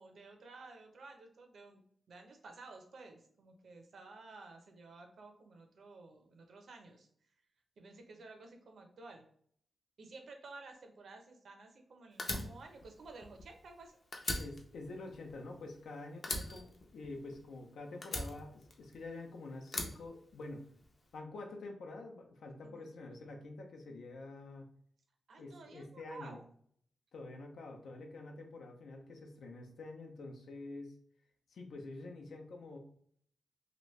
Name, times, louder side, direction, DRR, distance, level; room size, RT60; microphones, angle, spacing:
voice 1, 0.0-7.3 7.8-9.2 10.0-14.0 22.6-22.9 25.3-26.4, right 3 dB, 65° right, 4 dB, 0.7 m, -53 dB
Fire, 12.2-13.8 14.1-15.9 16.2-17.6 18.0-19.2 19.7-20.8, left 2 dB, 40° left, 0.6 m, -40 dB
voice 2, 14.4-20.6 21.1-24.7 25.4-26.4 27.1-30.9 31.5-32.8, left 2 dB, 85° left, 2 dB, 0.7 m, -47 dB
3.0 x 2.6 x 3.2 m, 0.63 s
wide cardioid pair, 125°, 0 cm